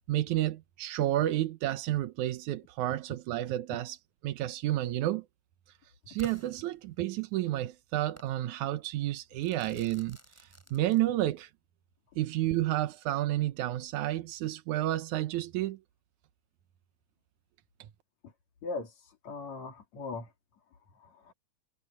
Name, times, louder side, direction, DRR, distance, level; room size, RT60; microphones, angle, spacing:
voice 1, 0.1-4.0 4.2-5.3 6.1-11.5 12.2-15.8 17.8-17.9, right 14 dB, 90° right, 2.4 m, -31 dB
Crackle / Fireworks, 6.2-7.3 8.2-8.4 9.4-11.4, equal, 5° right, 5.8 m, -52 dB
voice 2, 18.6-20.3 20.9-21.3, left 3 dB, 65° left, 4.3 m, -40 dB
omnidirectional pair, 3.3 m